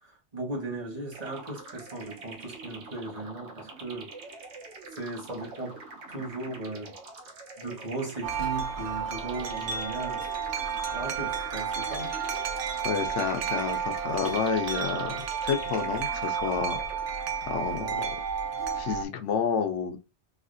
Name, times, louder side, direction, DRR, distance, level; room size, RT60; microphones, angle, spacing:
voice 1, 0.0-4.1 4.9-5.8 6.1-7.0 7.6-10.3 10.9-12.1 17.7-18.1, right 2 dB, 35° right, 1.2 m, -37 dB
sound 1, 1.1-17.5, right 3 dB, 65° right, 1.1 m, -45 dB
Wind chime, 8.2-19.1, right 7 dB, 90° right, 1.0 m, -32 dB
voice 2, 12.8-16.8 17.1-18.1 18.8-20.0, left 6 dB, 80° left, 0.9 m, -30 dB
3.2 x 2.8 x 2.5 m
omnidirectional pair, 1.2 m